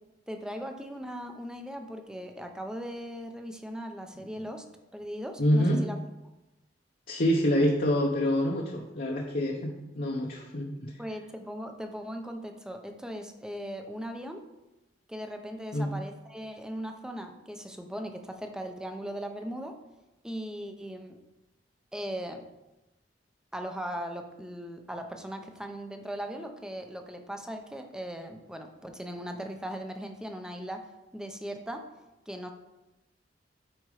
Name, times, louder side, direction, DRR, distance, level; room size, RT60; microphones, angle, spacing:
voice 1, 0.3-4.6 4.9-6.0 11.0-14.4 15.1-19.8 20.2-21.2 21.9-22.5 23.5-30.9 31.1-31.9 32.3-32.5, equal, 5° right, 5 dB, 0.7 m, -38 dB
voice 2, 5.4-5.8 7.1-10.9 15.7-15.9, equal, 50° left, -1 dB, 0.9 m, -26 dB
8.9 x 4.4 x 4.9 m, 0.99 s
head